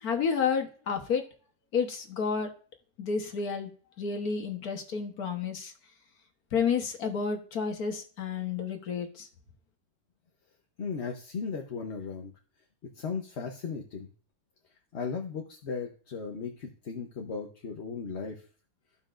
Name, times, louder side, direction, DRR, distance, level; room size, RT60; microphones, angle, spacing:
voice 1, 0.0-1.2 1.7-2.5 3.0-3.7 4.0-5.7 6.5-9.3, left 6 dB, 90° left, 4 dB, 1.8 m, -30 dB
voice 2, 10.8-12.3 13.0-14.1 14.9-18.4, left 5 dB, 50° left, 2 dB, 1.2 m, -36 dB
15.0 x 5.6 x 2.5 m, 0.40 s
omnidirectional pair, 1.5 m